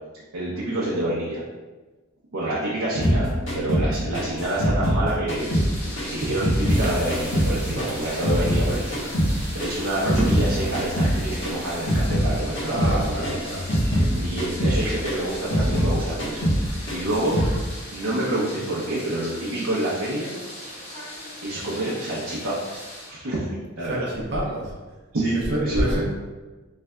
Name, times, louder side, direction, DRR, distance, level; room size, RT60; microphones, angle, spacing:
voice 1, 0.3-1.4 2.3-5.6 6.0-9.1 9.5-13.4 14.1-16.5 16.9-17.4 17.9-20.3 21.4-22.8 23.1-23.5 23.8-24.1 25.1-26.0, right 1 dB, 85° right, -7 dB, 0.7 m, -27 dB
sound 1, 3.0-5.7 6.0-8.7 8.9-12.3 12.5-13.0 13.2-15.9 16.2-16.6 16.9-17.5, equal, 60° left, 1.2 m, -23 dB
sound 2, 5.4-23.1, left 1 dB, 30° left, 0.9 m, -39 dB
sound 3, 6.7-12.1, right 1 dB, 5° right, 0.5 m, -35 dB
voice 2, 12.6-13.7 23.9-24.7 25.3-26.0, right 1 dB, 50° right, -3 dB, 0.8 m, -28 dB
3.6 x 3.3 x 2.2 m, 1.2 s
head